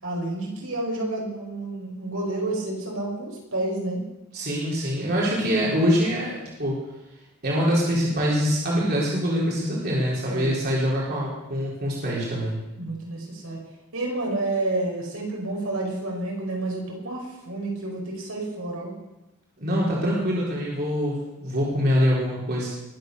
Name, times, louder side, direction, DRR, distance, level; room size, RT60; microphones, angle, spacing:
voice 1, 0.0-4.0 10.3-10.7 12.8-13.6 13.9-18.9, right 2 dB, 70° right, -1 dB, 5.3 m, -30 dB
voice 2, 4.3-6.8 7.4-12.6 19.6-22.7, equal, 45° right, -5 dB, 4.2 m, -24 dB
21.5 x 8.2 x 6.8 m, 0.97 s
head